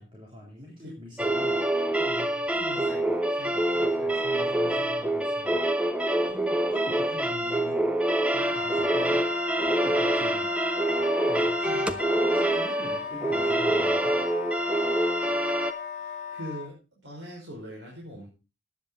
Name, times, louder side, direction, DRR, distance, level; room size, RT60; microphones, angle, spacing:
voice 1, 0.0-1.7 2.0-2.4 4.1-5.6 6.3-7.9 8.3-9.3 9.6-10.6 11.3-11.6 12.3-14.2, left 1 dB, 30° right, -3 dB, 3.7 m, -44 dB
sound 1, 1.2-15.7, right 1 dB, 5° right, 0.9 m, -26 dB
voice 2, 2.6-4.2 11.7-12.0 16.0-18.3, equal, 70° right, -2 dB, 5.3 m, -42 dB
Wind instrument woodwind instrument, 8.3-16.7, left 5 dB, 40° left, 2.6 m, -37 dB
15.0 x 10.0 x 4.0 m, 0.32 s
head